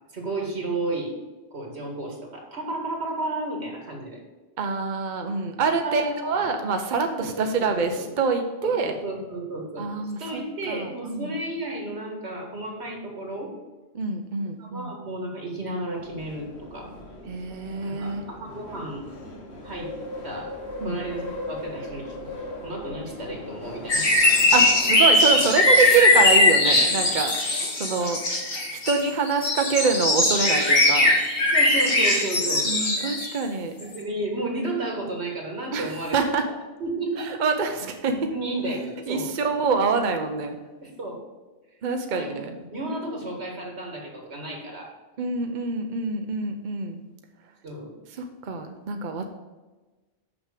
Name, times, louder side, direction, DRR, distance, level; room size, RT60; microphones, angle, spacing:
voice 1, 0.1-1.1 1.5-4.2 5.8-6.4 7.2-8.0 8.6-9.9 10.2-13.5 14.6-16.9 17.9-19.0 19.6-20.0 20.2-20.6 20.8-22.1 22.6-24.1 31.5-32.7 33.8-36.1 36.8-37.3 38.1-39.3 40.8-41.2 42.1-42.3 42.7-44.9 47.6-47.9, right 2 dB, 85° right, 0 dB, 2.2 m, -32 dB
voice 2, 4.6-8.9 9.8-10.4 10.7-11.4 13.9-14.9 17.3-18.2 20.8-21.0 24.5-27.3 27.7-28.2 28.7-31.1 32.6-33.7 35.7-36.4 37.2-38.3 38.6-38.8 39.1-40.6 41.8-42.6 45.2-47.0 48.1-49.3, right 4 dB, 50° right, 5 dB, 0.8 m, -26 dB
sound 1, 15.9-27.1, left 1 dB, 80° left, 1.8 m, -39 dB
sound 2, 23.9-33.4 33.9-34.0, left 2 dB, 60° left, 1.6 m, -20 dB
6.2 x 6.2 x 6.7 m, 1.2 s
omnidirectional pair, 1.1 m